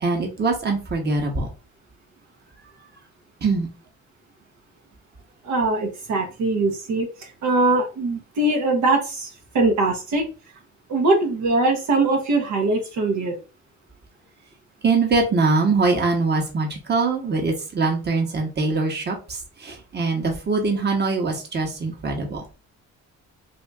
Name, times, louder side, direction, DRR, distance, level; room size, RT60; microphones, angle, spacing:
voice 1, 0.0-1.5 3.4-3.7 14.8-22.4, right 3 dB, 35° right, 1 dB, 1.2 m, -23 dB
voice 2, 5.4-9.3 9.5-10.3 10.9-13.4, right 2 dB, 70° right, 0 dB, 1.0 m, -22 dB
2.7 x 2.7 x 3.5 m, 0.33 s
cardioid pair, 90°, 30 cm